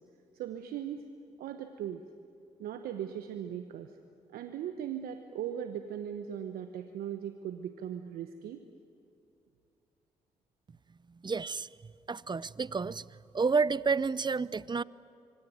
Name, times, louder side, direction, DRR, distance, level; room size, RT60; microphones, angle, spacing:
voice 1, 0.3-1.1 1.4-2.0 2.6-3.9 4.3-8.6, right 9 dB, 75° right, 1.0 m, -38 dB
voice 2, 11.2-11.7 12.1-13.0 13.3-14.8, right 4 dB, 30° right, 0.7 m, -30 dB
26.0 x 23.5 x 9.4 m
hypercardioid pair, 45°, 15 cm